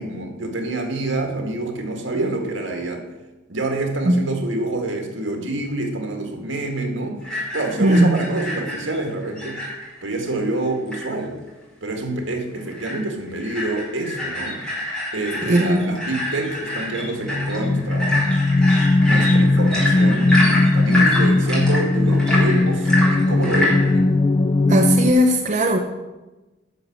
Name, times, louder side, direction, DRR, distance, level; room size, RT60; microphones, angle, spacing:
voice 1, 0.0-3.1 3.5-7.2 7.5-9.6 10.0-11.4 11.8-14.6 15.1-18.3 19.0-24.1, right 2 dB, 75° right, 3 dB, 2.0 m, -27 dB
sound 1, 7.2-10.0 10.3-10.4 10.7-11.0 11.5-11.6 12.0-12.1 12.6-13.0 13.3-23.9, left 1 dB, 5° left, 4.6 m, -26 dB
voice 2, 7.8-8.1 15.5-15.9 24.7-25.8, equal, 40° right, 3 dB, 0.8 m, -17 dB
sound 2, 16.8-25.1, left 2 dB, 25° left, 0.3 m, -18 dB
10.5 x 6.4 x 7.3 m, 1.1 s
head